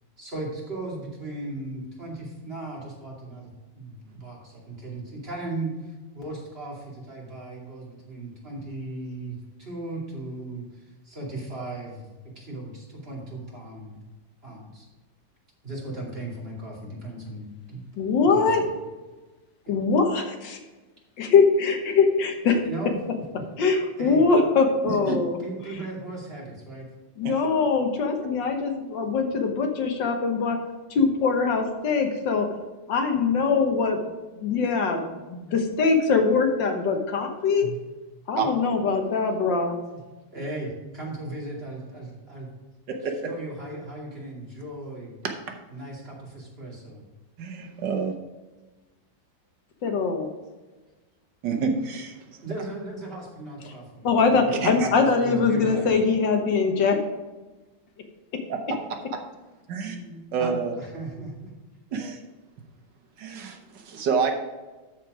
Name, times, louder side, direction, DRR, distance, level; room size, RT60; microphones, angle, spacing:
voice 1, 0.2-12.1 12.3-14.0 14.4-14.9 15.6-17.8 18.3-18.7 19.7-19.8 22.6-22.9 23.3-23.4 24.0-24.2 24.8-25.1 25.4-26.9 37.6-37.8 38.4-38.5 39.9-40.0 40.3-42.5 43.3-45.2 45.7-47.0 52.4-54.5 54.8-55.9 59.8-61.5, right 2 dB, 30° right, -4 dB, 2.8 m, -37 dB
voice 2, 18.0-18.6 19.7-20.6 21.2-22.6 23.6-25.4 27.2-30.6 30.9-32.5 32.9-34.1 34.4-37.7 38.3-39.8 49.8-50.3 54.0-57.0, left 4 dB, 80° left, 4 dB, 1.9 m, -22 dB
voice 3, 24.8-25.2 27.2-27.5 38.4-38.5 42.9-43.3 47.4-48.1 51.4-52.2 54.5-54.9 58.5-58.8 59.7-60.0 60.3-60.7 61.9-62.2 63.2-64.3, right 5 dB, 75° right, 4 dB, 1.7 m, -28 dB
13.0 x 4.5 x 4.9 m, 1.2 s
omnidirectional pair, 2.0 m